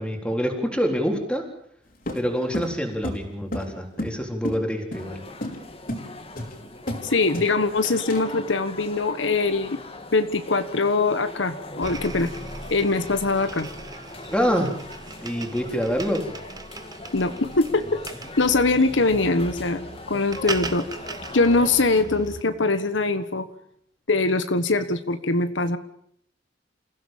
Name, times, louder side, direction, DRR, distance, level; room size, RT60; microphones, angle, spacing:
voice 1, 0.0-1.5 2.1-5.2 14.3-14.8 15.2-16.3, equal, 5° left, 2 dB, 3.8 m, -26 dB
sound 1, 2.1-4.2 4.4-4.6 4.9-5.1 5.4-5.6 5.9-6.1 6.4-7.1 7.3-8.3, left 1 dB, 50° left, 4.3 m, -32 dB
sound 2, 4.9-22.0, left 2 dB, 30° left, 2.2 m, -40 dB
voice 2, 7.0-9.8 10.1-12.3 12.7-13.7 17.1-18.0 18.4-20.9 21.3-23.5 24.1-25.8, left 3 dB, 80° left, 10 dB, 1.4 m, -22 dB
sound 3, 11.8-22.4, right 3 dB, 20° right, 1.4 m, -39 dB
28.5 x 16.0 x 7.4 m, 0.70 s
head